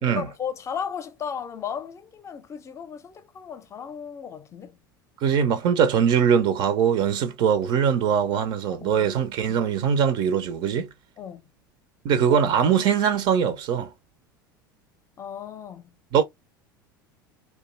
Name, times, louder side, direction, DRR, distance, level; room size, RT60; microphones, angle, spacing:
voice 1, 0.0-4.8 8.7-9.1 11.2-11.5 15.2-16.0, left 7 dB, 25° left, 0.6 m, -35 dB
voice 2, 5.2-10.9 12.0-13.9 16.1-16.2, right 7 dB, 45° right, 0.6 m, -22 dB
2.6 x 2.3 x 4.0 m
figure-of-eight pair, 75°, 12 cm